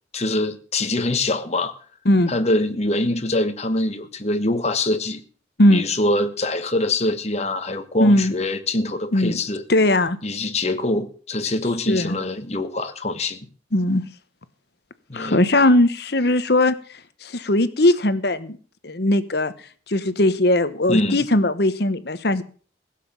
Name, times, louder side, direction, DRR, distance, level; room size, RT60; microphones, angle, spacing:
voice 1, 0.1-1.7 2.3-5.2 5.7-9.6 10.2-13.5 15.1-15.4 20.9-21.3, left 2 dB, 35° left, 8 dB, 1.4 m, -24 dB
voice 2, 8.0-8.3 9.1-9.4 9.7-10.2 11.9-12.2 13.7-14.0 15.1-16.7 17.2-18.6 18.8-19.5 19.9-22.4, left 1 dB, 55° left, 12 dB, 1.1 m, -19 dB
16.5 x 7.6 x 7.4 m, 0.42 s
head